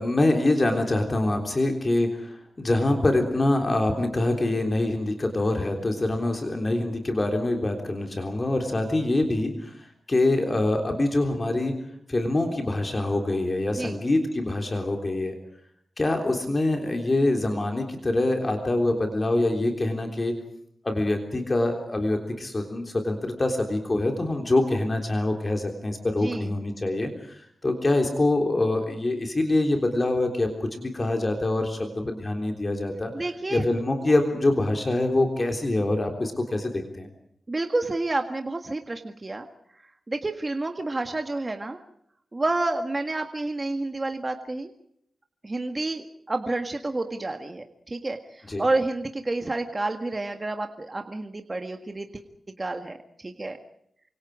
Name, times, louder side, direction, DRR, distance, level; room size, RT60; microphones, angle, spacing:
voice 1, 0.0-11.8 12.1-15.3 16.0-20.3 20.8-33.1 33.5-37.1 48.5-48.6, left 2 dB, 25° left, 3 dB, 3.5 m, -25 dB
voice 2, 26.2-26.5 33.1-33.6 37.5-39.5 40.1-41.8 42.3-44.7 45.4-52.2 52.6-53.6, right 2 dB, 25° right, 5 dB, 1.7 m, -29 dB
28.5 x 26.0 x 5.0 m, 0.72 s
wide cardioid pair, 150°, 0 cm